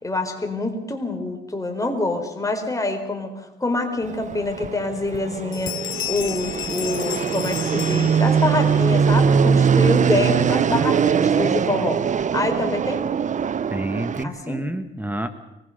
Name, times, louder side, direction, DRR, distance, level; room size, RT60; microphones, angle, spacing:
voice 1, 0.0-5.7 6.1-12.0 12.3-13.0 14.2-14.6, left 2 dB, 15° left, 5 dB, 4.2 m, -26 dB
Fixed-wing aircraft airplane, 4.0-14.2, right 7 dB, 40° right, 0.7 m, -21 dB
sound 1, 4.5-4.6 5.0-5.3 5.5-8.7, left 14 dB, 80° left, 1.0 m, -32 dB
voice 2, 13.7-15.3, right 1 dB, 10° right, 9 dB, 1.6 m, -28 dB
23.5 x 20.5 x 6.6 m, 0.89 s
cardioid pair, 90°, 20 cm